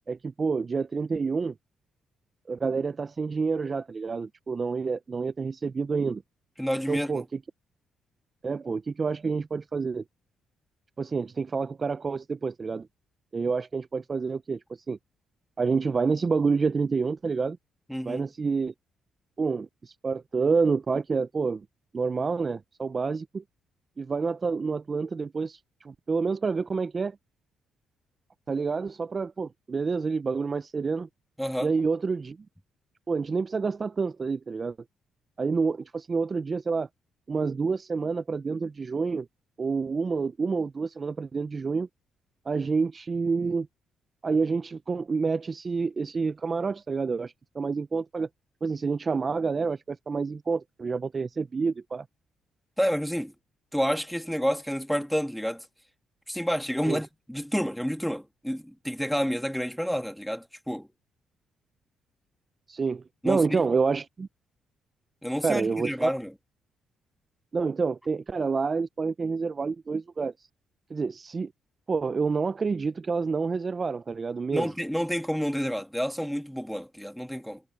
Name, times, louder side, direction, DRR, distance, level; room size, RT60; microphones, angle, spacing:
voice 1, 0.1-1.5 2.5-6.2 6.9-7.4 8.4-10.0 11.0-12.9 13.3-14.6 14.9-15.0 15.6-17.6 18.0-18.7 19.4-21.6 21.9-23.4 24.0-27.2 28.5-31.1 31.6-32.4 33.1-34.8 35.4-36.9 37.3-39.3 39.6-41.9 42.5-43.7 44.2-48.3 48.6-52.0 56.9-57.0 62.7-64.3 65.4-66.1 67.5-70.3 70.9-71.5 71.9-74.7, right 4 dB, 35° right, 0.5 m, -28 dB
voice 2, 6.6-7.2 17.9-18.3 31.4-31.7 52.8-53.3 53.7-55.7 56.3-60.9 63.2-63.6 65.2-66.3 74.5-77.6, equal, ahead, 1.7 m, -29 dB
cardioid pair, 90°, 0 cm